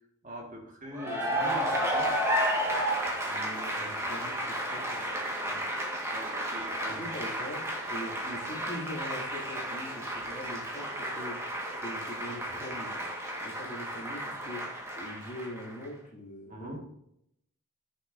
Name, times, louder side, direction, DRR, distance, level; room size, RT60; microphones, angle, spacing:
voice 1, 0.2-2.2 6.1-7.3 16.5-16.8, equal, 35° right, 0 dB, 2.0 m, -42 dB
Cheering / Applause, 0.9-15.9, equal, 10° right, 1.6 m, -32 dB
voice 2, 3.2-5.6 6.9-7.6 7.9-12.9 13.4-16.8, equal, 35° left, -3 dB, 2.4 m, -42 dB
14.0 x 6.7 x 2.7 m, 0.76 s
head